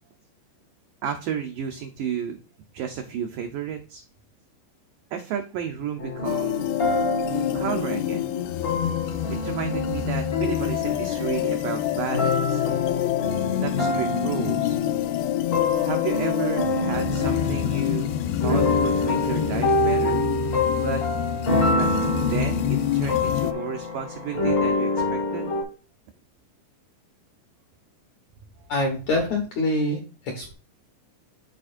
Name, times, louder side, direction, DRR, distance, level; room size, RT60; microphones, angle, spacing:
voice 1, 1.0-2.4 2.7-4.0 5.1-6.6 7.5-8.3 9.3-12.7 13.6-14.8 15.8-20.2 20.8-21.0 21.7-21.9 22.2-22.6 22.9-25.5, right 8 dB, 85° right, 5 dB, 1.9 m, -32 dB
sound 1, 6.0-11.7 12.1-25.6, left 2 dB, 50° left, 0.9 m, -27 dB
sound 2, 6.2-23.5, left 12 dB, 90° left, 2.1 m, -27 dB
voice 2, 28.7-30.0 30.2-30.5, left 1 dB, 75° left, 3 dB, 1.7 m, -25 dB
12.5 x 4.3 x 2.5 m, 0.35 s
omnidirectional pair, 4.9 m